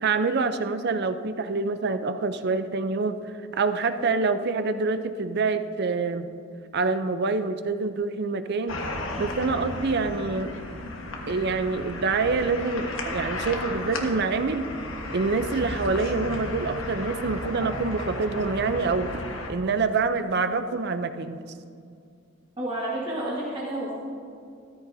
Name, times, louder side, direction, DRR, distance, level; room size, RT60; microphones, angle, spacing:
voice 1, 0.0-3.2 3.5-6.3 6.7-8.8 9.2-10.5 11.3-14.7 15.1-19.1 19.5-21.4, right 4 dB, 50° right, 10 dB, 0.5 m, -26 dB
sound 1, 8.7-19.5, left 2 dB, 70° left, 1.4 m, -34 dB
voice 2, 22.6-23.9, right 1 dB, 25° right, -5 dB, 1.4 m, -30 dB
14.0 x 13.5 x 2.7 m, 2.4 s
head